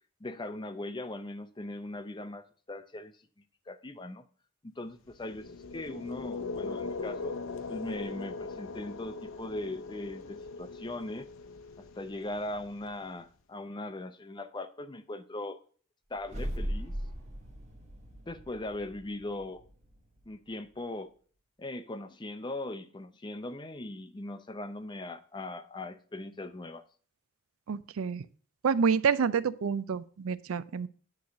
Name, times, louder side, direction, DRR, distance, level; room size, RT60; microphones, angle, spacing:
voice 1, 0.2-3.1 3.7-4.2 4.6-5.5 5.7-7.4 7.7-11.3 11.8-15.6 16.1-16.9 18.3-19.6 20.3-21.1 21.6-26.8, left 2 dB, 20° left, 10 dB, 0.5 m, -39 dB
sound 1, 5.1-13.2, left 4 dB, 65° left, 0.7 m, -40 dB
sound 2, 16.2-20.5, equal, 30° right, 1.5 m, -39 dB
voice 2, 27.7-28.2 28.6-30.9, right 6 dB, 80° right, 15 dB, 0.4 m, -28 dB
9.5 x 3.2 x 6.1 m, 0.42 s
head